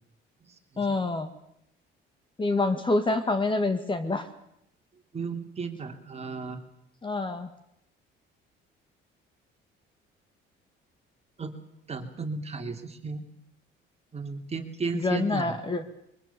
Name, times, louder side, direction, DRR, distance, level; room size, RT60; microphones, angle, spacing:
voice 1, 0.8-1.3 2.4-4.3 7.0-7.5 14.9-15.8, left 2 dB, 25° left, 9 dB, 2.1 m, -26 dB
voice 2, 5.1-6.6 11.4-11.5 11.9-13.3 14.1-15.6, right 4 dB, 30° right, 5 dB, 2.9 m, -34 dB
23.0 x 22.5 x 7.1 m, 0.77 s
cardioid pair, 115°, 21 cm